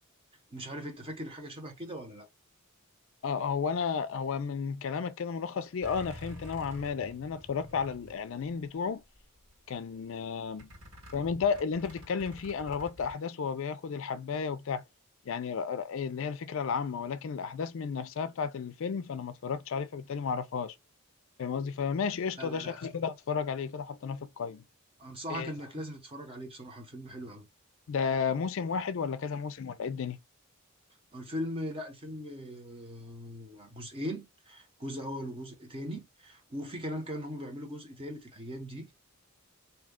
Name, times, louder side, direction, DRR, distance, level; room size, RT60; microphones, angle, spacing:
voice 1, 0.5-2.3 22.4-22.8 25.0-27.5 31.1-38.9, equal, 25° right, 0.8 m, -39 dB
voice 2, 3.2-9.0 9.7-10.7 11.1-14.8 15.3-20.8 21.4-24.6 25.3-25.5 27.9-30.2, left 6 dB, 60° left, 0.4 m, -33 dB
sound 1, 5.8-8.8 9.1-9.7 10.6-13.1, left 1 dB, 60° right, 1.7 m, -49 dB
2.8 x 2.3 x 3.5 m
head